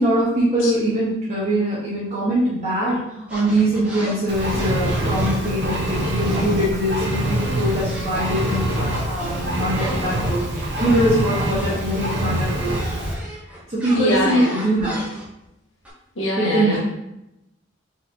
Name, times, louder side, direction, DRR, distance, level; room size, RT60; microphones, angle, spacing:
voice 1, 0.0-3.0 3.3-12.8 13.7-15.0 16.4-16.8, right 1 dB, 35° right, -9 dB, 1.2 m, -22 dB
sound 1, 3.3-6.7 7.0-15.5 15.9-16.0, equal, 5° right, 1.0 m, -33 dB
Engine, 4.3-13.1, right 1 dB, 65° right, 0.8 m, -25 dB
voice 2, 14.0-14.6 16.2-16.8, left 1 dB, 85° left, -4 dB, 1.4 m, -22 dB
4.3 x 4.0 x 2.7 m, 0.87 s
head